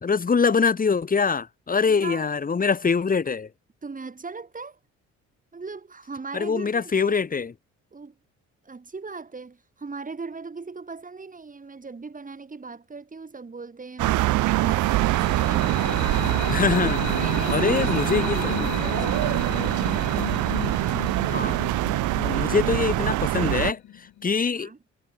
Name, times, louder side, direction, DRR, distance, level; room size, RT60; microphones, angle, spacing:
voice 1, 0.0-3.5 6.3-7.5 16.5-17.0 17.5-18.5 21.3-21.6 22.2-24.7, left 5 dB, 30° left, 1.3 m, -24 dB
voice 2, 1.9-2.3 3.8-4.8 5.5-7.1 7.9-8.1 8.6-15.6 17.1-19.7 24.5-24.8, right 4 dB, 25° right, 4.7 m, -38 dB
sound 1, 14.0-23.7, right 17 dB, 80° right, 0.6 m, -24 dB
sound 2, 14.5-24.3, left 12 dB, 70° left, 2.0 m, -34 dB
cardioid pair, 90°, 30 cm